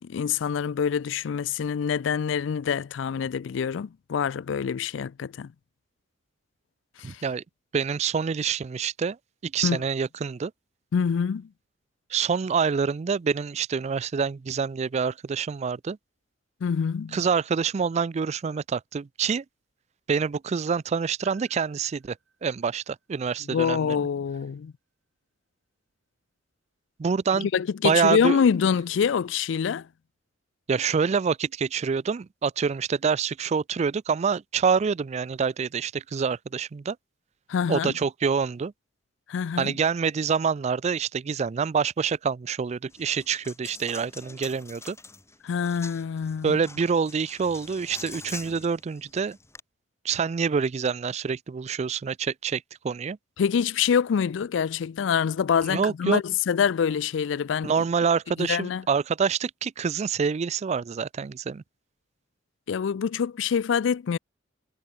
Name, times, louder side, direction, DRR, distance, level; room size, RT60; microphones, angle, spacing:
voice 1, 0.0-5.5 7.0-7.2 9.6-9.8 10.9-11.5 16.6-17.2 23.5-24.7 27.3-29.9 37.5-37.9 39.3-39.7 45.4-46.6 53.4-57.7 58.4-58.8 62.7-64.2, left 7 dB, 75° left, 0.4 m, -25 dB
voice 2, 7.0-7.4 7.7-9.2 9.4-10.5 12.1-16.0 17.1-19.4 20.1-22.2 22.4-24.0 27.0-27.5 27.8-28.4 30.7-37.0 37.7-38.7 39.6-45.0 46.4-49.4 50.0-53.2 55.7-56.2 57.6-61.6, right 6 dB, 35° right, 0.3 m, -26 dB
Piano, 21.2-25.1 25.4-25.5 26.6-26.7, right 6 dB, 90° right, 5.4 m, -60 dB
Coin (dropping), 42.9-49.6, left 3 dB, 15° left, 5.6 m, -45 dB
head